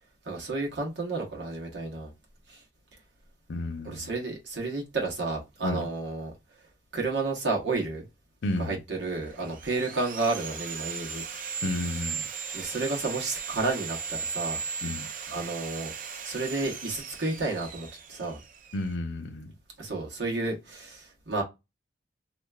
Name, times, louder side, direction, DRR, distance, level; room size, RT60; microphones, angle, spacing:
voice 1, 0.2-2.1 2.5-2.6 3.8-6.3 6.9-8.1 8.6-11.2 12.5-14.6 15.3-15.9 16.2-18.4 19.8-21.4, right 3 dB, 70° right, 1.2 m, -31 dB
voice 2, 3.5-4.1 5.6-5.9 8.4-8.8 11.6-12.2 14.8-15.1 18.7-19.5, left 2 dB, 80° left, 0.6 m, -32 dB
Sawing, 9.1-18.9, right 6 dB, 45° right, 0.5 m, -37 dB
3.3 x 2.8 x 2.4 m
head